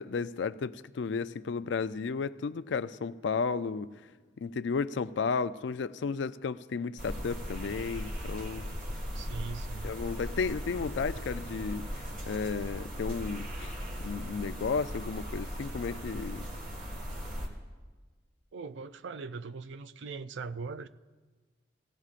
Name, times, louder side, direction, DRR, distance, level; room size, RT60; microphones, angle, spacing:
voice 1, 0.0-3.9 4.4-8.7 9.8-13.7 14.0-16.5, left 5 dB, 70° left, 0.4 m, -33 dB
sound 1, 7.0-17.5, equal, 45° right, 1.8 m, -38 dB
voice 2, 9.1-9.9 18.5-20.9, right 4 dB, 75° right, 0.4 m, -40 dB
17.5 x 15.5 x 2.5 m
head